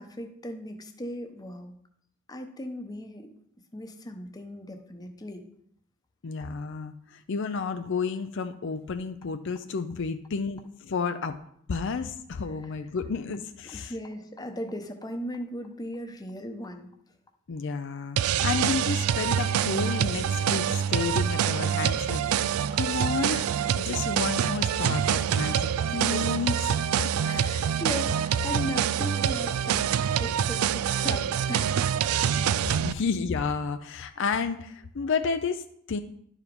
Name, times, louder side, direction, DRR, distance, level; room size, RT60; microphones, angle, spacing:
voice 1, 0.0-1.7 2.3-3.3 3.7-5.4 13.6-16.9 26.0-26.3 27.2-31.9, left 1 dB, 20° left, 5 dB, 0.9 m, -37 dB
voice 2, 6.2-11.4 11.7-13.9 17.5-27.2 32.5-36.0, left 5 dB, 60° left, 8 dB, 0.5 m, -31 dB
sound 1, 18.2-32.9, right 9 dB, 80° right, 0.3 m, -26 dB
11.0 x 4.9 x 5.2 m, 0.69 s
head